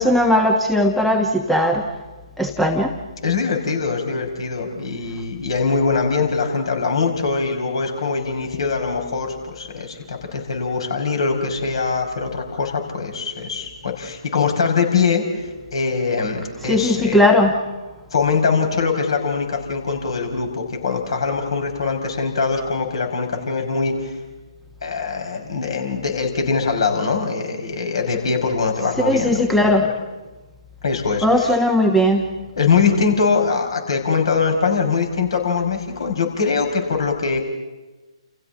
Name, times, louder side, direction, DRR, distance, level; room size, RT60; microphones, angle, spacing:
voice 1, 0.0-1.9 2.4-3.0 16.6-17.5 29.0-29.9 31.2-32.3, left 1 dB, ahead, 4 dB, 1.3 m, -17 dB
voice 2, 3.2-17.2 18.1-24.1 24.8-29.7 30.8-31.3 32.6-37.4, left 5 dB, 55° left, 4 dB, 5.6 m, -22 dB
29.5 x 29.0 x 4.0 m, 1.2 s
figure-of-eight pair, 140°, 3 cm